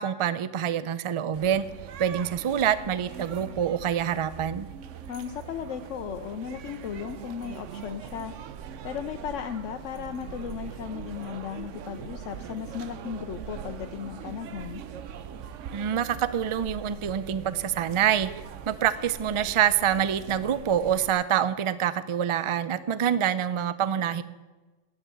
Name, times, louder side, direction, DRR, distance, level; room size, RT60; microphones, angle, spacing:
voice 1, 0.0-1.7 2.0-4.7 15.7-18.3 18.7-24.2, right 9 dB, 50° right, 15 dB, 0.3 m, -26 dB
sound 1, 1.3-21.1, right 8 dB, 80° right, 1.0 m, -41 dB
voice 2, 5.1-8.3 8.8-14.8, left 8 dB, 85° left, 6 dB, 1.0 m, -36 dB
11.0 x 8.9 x 8.2 m, 1.2 s
omnidirectional pair, 1.3 m